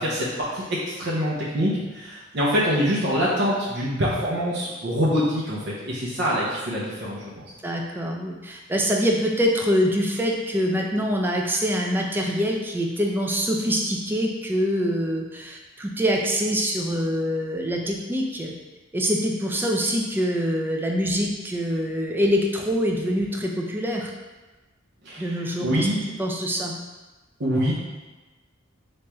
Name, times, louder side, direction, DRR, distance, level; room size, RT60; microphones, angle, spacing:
voice 1, 0.0-7.4 25.0-26.0 27.4-27.7, equal, 60° right, -7 dB, 0.6 m, -25 dB
voice 2, 7.6-18.5 18.9-24.1 25.2-25.9 26.2-26.7, equal, 10° right, 0 dB, 0.4 m, -24 dB
3.4 x 3.0 x 3.0 m, 1.2 s
head